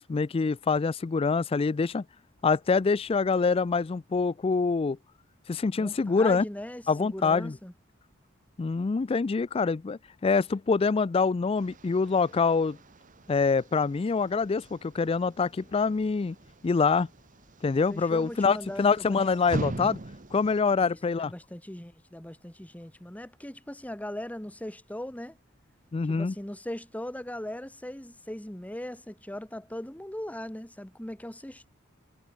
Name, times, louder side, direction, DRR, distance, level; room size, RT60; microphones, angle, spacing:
voice 1, 0.0-2.0 2.4-5.0 5.5-6.4 6.9-7.6 8.6-12.8 13.3-16.4 16.6-17.1 17.6-20.0 20.3-21.3 25.9-26.3, left 4 dB, 30° left, 0.3 m, -25 dB
voice 2, 5.7-7.7 17.9-19.2 20.7-25.4 26.1-31.7, left 1 dB, 5° left, 1.1 m, -39 dB
sound 1, 11.6-20.6, right 2 dB, 40° right, 1.2 m, -42 dB
head